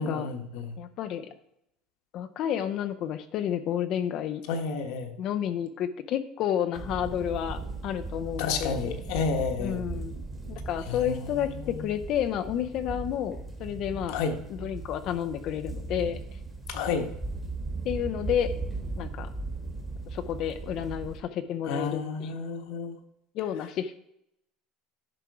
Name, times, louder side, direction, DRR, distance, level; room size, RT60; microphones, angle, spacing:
voice 1, 0.0-0.8 4.5-5.1 8.4-9.8 10.9-11.9 14.1-14.4 16.7-17.1 21.7-23.0, left 5 dB, 65° left, 6 dB, 1.2 m, -31 dB
voice 2, 0.8-1.3 2.1-4.4 5.2-8.9 9.6-14.2 14.5-16.2 17.8-18.5 19.0-19.3 20.1-22.3 23.3-24.0, left 10 dB, 40° left, 9 dB, 0.5 m, -31 dB
sound 1, 6.7-21.2, right 3 dB, 10° right, 1.3 m, -38 dB
11.0 x 5.7 x 4.8 m, 0.78 s
cardioid pair, 175°, 0 cm